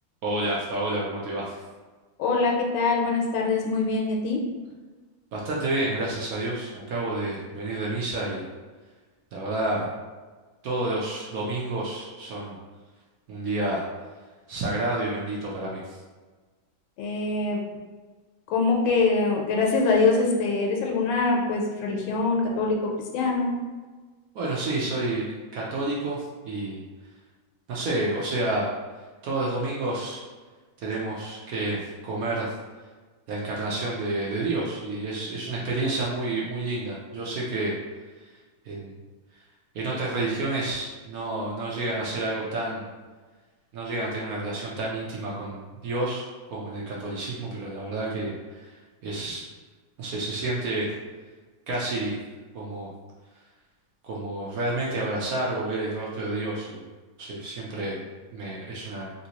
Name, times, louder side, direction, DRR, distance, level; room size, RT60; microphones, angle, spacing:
voice 1, 0.2-1.5 5.3-8.5 9.3-9.9 10.6-12.5 13.3-13.8 14.5-16.0 24.3-25.3 25.5-26.2 26.4-26.8 27.7-28.7 29.2-30.2 30.8-32.5 33.3-37.7 38.7-38.9 39.7-42.8 43.7-46.2 46.5-48.7 49.0-49.4 50.0-50.9 51.7-52.2 52.5-52.9 54.0-56.8 57.2-58.0 58.3-59.1, right 2 dB, 75° right, -5 dB, 0.8 m, -29 dB
voice 2, 2.2-4.4 17.0-17.6 18.5-22.7 23.1-23.5, left 3 dB, 85° left, 0 dB, 1.4 m, -23 dB
3.3 x 2.7 x 2.8 m, 1.3 s
omnidirectional pair, 2.2 m